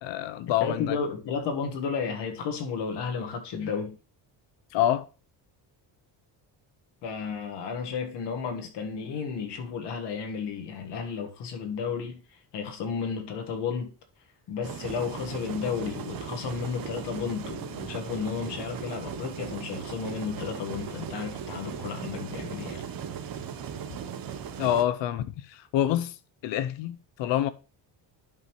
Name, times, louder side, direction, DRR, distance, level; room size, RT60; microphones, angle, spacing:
voice 1, 0.0-1.0 4.7-5.1 24.6-26.2 26.4-27.5, left 12 dB, 90° left, 0.7 m, -27 dB
voice 2, 0.6-4.0 7.0-13.9 14.5-22.8, left 6 dB, 70° left, 1.5 m, -33 dB
sound 1, 14.6-24.8, right 8 dB, 50° right, 0.9 m, -38 dB
10.5 x 5.4 x 3.1 m
cardioid pair, 170°, 43 cm